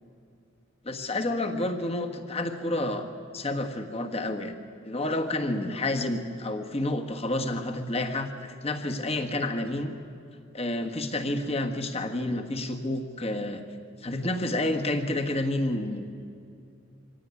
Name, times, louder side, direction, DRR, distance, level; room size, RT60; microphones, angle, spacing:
voice 1, 0.8-3.1 3.3-4.5 4.8-9.9 10.5-13.6 14.0-16.0, left 1 dB, 30° left, 5 dB, 1.6 m, -29 dB
24.5 x 17.5 x 9.6 m, 2.5 s
head